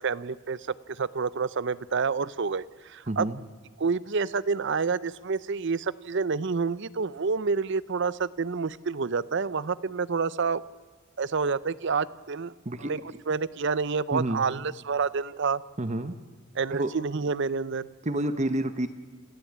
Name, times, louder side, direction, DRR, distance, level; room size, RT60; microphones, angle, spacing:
voice 1, 0.0-3.3 3.8-10.6 11.2-12.5 12.8-13.0 13.3-15.6 16.5-17.9, right 5 dB, 55° right, 18 dB, 0.6 m, -28 dB
voice 2, 3.1-3.4 12.6-12.9 14.1-14.4 15.8-16.1 16.7-16.9 18.0-18.9, right 1 dB, 30° right, 10 dB, 0.9 m, -29 dB
27.5 x 14.0 x 8.6 m, 1.5 s
head